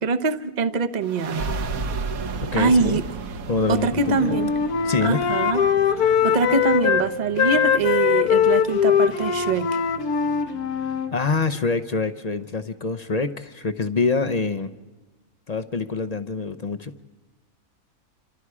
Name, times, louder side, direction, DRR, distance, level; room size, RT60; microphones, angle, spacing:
voice 1, 0.0-1.4 2.5-3.0 3.7-4.5 5.0-9.7, right 4 dB, 35° right, 11 dB, 0.8 m, -23 dB
sound 1, 1.0-12.3, right 4 dB, 65° right, 1.5 m, -35 dB
voice 2, 2.4-3.0 3.5-4.4 4.8-5.2 11.1-14.7 15.5-16.9, left 4 dB, 40° left, 9 dB, 0.6 m, -25 dB
Wind instrument woodwind instrument, 4.0-7.1 7.4-11.1, left 8 dB, 75° left, 1.5 m, -21 dB
28.0 x 26.5 x 4.9 m, 1.2 s
omnidirectional pair, 1.6 m